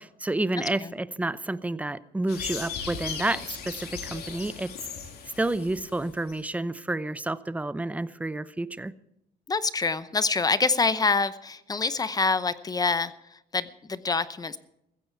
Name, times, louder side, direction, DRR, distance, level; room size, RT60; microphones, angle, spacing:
voice 1, 0.0-4.9 5.4-8.9, right 2 dB, 10° right, 15 dB, 0.7 m, -30 dB
voice 2, 0.6-0.9 9.5-14.6, left 4 dB, 20° left, 14 dB, 0.8 m, -26 dB
sound 1, 2.3-6.4, left 6 dB, 70° left, 3.2 m, -37 dB
15.5 x 15.0 x 4.7 m, 0.80 s
cardioid pair, 110°, 17 cm